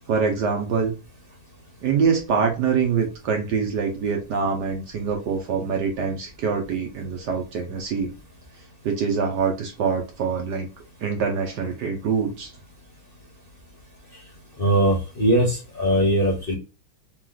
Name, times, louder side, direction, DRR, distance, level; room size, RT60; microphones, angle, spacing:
voice 1, 0.1-1.0 1.8-8.1 8.8-10.7 11.0-12.5, right 5 dB, 65° right, 1.3 m, -24 dB
voice 2, 14.6-16.5, right 1 dB, 35° left, 1.1 m, -20 dB
4.0 x 3.1 x 3.8 m
omnidirectional pair, 2.3 m